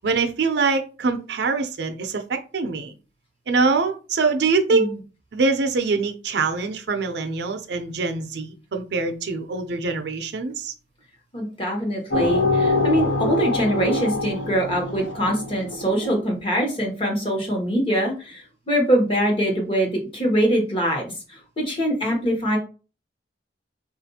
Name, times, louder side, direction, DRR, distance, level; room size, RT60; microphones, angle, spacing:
voice 1, 0.0-3.0 3.5-4.9 5.3-10.7, right 4 dB, 65° right, 6 dB, 0.5 m, -24 dB
voice 2, 11.3-22.6, equal, 30° left, 1 dB, 0.9 m, -23 dB
sound 1, 12.1-16.1, left 2 dB, 80° left, 0.6 m, -24 dB
3.7 x 2.4 x 2.7 m, 0.34 s
head